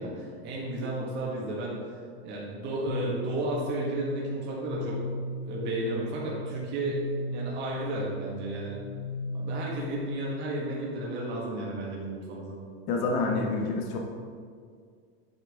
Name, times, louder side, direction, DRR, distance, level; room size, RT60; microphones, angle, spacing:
voice 1, 0.0-2.0 2.2-7.0 7.3-8.8 9.3-12.6, right 1 dB, 35° right, -5 dB, 1.6 m, -33 dB
sound 1, 2.9-10.4, left 2 dB, 90° left, 0.8 m, -37 dB
voice 2, 12.9-14.0, left 3 dB, 50° left, 1 dB, 1.3 m, -27 dB
8.3 x 6.1 x 3.6 m, 2.1 s
supercardioid pair, 150°, 32 cm